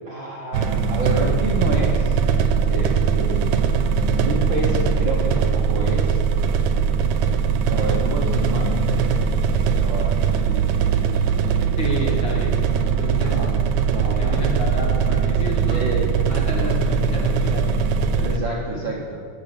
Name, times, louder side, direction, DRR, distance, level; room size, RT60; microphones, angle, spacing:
voice 1, 0.0-2.2 2.7-3.6 4.2-6.2 7.7-9.1 9.8-11.1 13.2-14.4 15.7-16.1 18.2-19.2, right 3 dB, 55° right, -2 dB, 1.4 m, -29 dB
sound 1, 0.5-18.4, right 6 dB, 85° right, 2.2 m, -20 dB
voice 2, 11.8-12.6 12.9-13.4 14.1-15.9 16.2-17.7 18.2-18.6, left 1 dB, 40° left, -4 dB, 2.6 m, -30 dB
14.5 x 7.0 x 6.7 m, 2.2 s
omnidirectional pair, 3.6 m